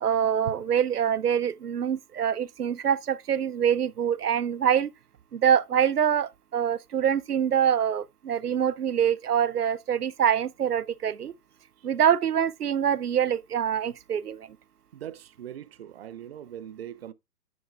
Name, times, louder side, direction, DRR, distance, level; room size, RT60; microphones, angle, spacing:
voice 1, 0.0-4.9 5.3-11.3 11.8-14.5, right 8 dB, 85° right, 0.6 m, -25 dB
voice 2, 14.9-17.1, right 10 dB, 45° right, 0.6 m, -41 dB
9.2 x 9.1 x 2.3 m
figure-of-eight pair, 125°, 45 cm